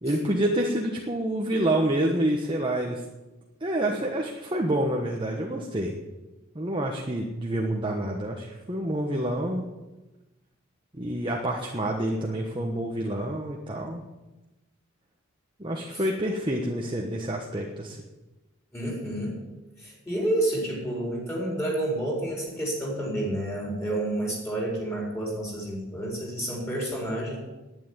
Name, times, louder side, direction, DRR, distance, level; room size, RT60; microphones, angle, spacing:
voice 1, 0.0-3.0 3.6-6.0 6.5-9.7 11.0-14.0 15.6-18.0, right 1 dB, 25° right, 0 dB, 1.2 m, -28 dB
voice 2, 18.7-19.4 19.8-27.4, right 1 dB, 15° left, -3 dB, 4.6 m, -29 dB
11.0 x 9.7 x 9.8 m, 1.1 s
head